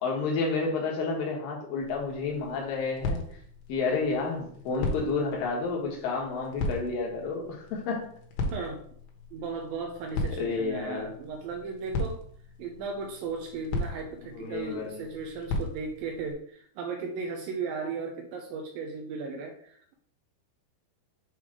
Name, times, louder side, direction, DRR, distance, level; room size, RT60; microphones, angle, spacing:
voice 1, 0.0-3.2 3.7-8.1 10.4-11.1 14.3-15.0, left 4 dB, 65° left, -1 dB, 2.8 m, -30 dB
sound 1, 1.8-16.3, left 2 dB, 85° left, 3.3 m, -37 dB
voice 2, 8.5-8.8 9.3-12.2 12.6-19.9, right 4 dB, 85° right, 3 dB, 2.0 m, -36 dB
7.6 x 3.3 x 4.8 m, 0.63 s
omnidirectional pair, 4.9 m